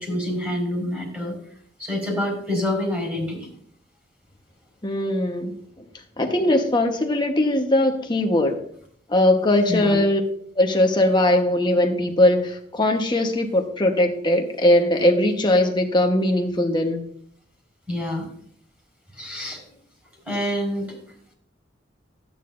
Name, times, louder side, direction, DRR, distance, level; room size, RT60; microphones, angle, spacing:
voice 1, 0.0-1.4 1.8-3.5 9.7-10.0 17.9-18.3 19.1-19.6 20.2-21.0, left 1 dB, 10° right, 0 dB, 4.6 m, -27 dB
voice 2, 4.8-5.9 6.2-8.6 9.1-10.2 10.6-17.0, left 1 dB, 25° left, 4 dB, 1.1 m, -20 dB
13.0 x 9.2 x 2.6 m, 0.63 s
head